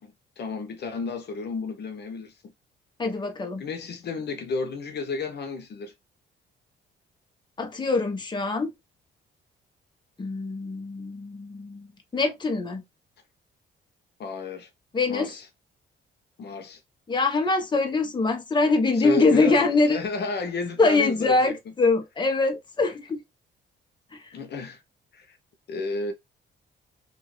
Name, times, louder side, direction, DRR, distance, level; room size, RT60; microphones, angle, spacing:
voice 1, 0.0-2.3 3.6-5.9 14.2-14.7 15.1-15.4 16.4-16.8 18.9-21.6 24.3-24.8 25.1-25.4 25.7-26.1, left 3 dB, 55° left, 0.8 m, -32 dB
voice 2, 3.0-3.6 7.6-8.7 10.2-12.8 14.9-15.3 17.1-20.0 20.8-23.2 24.1-24.3, left 3 dB, 25° left, 0.9 m, -23 dB
2.9 x 2.6 x 3.1 m
cardioid pair, 90°, 20 cm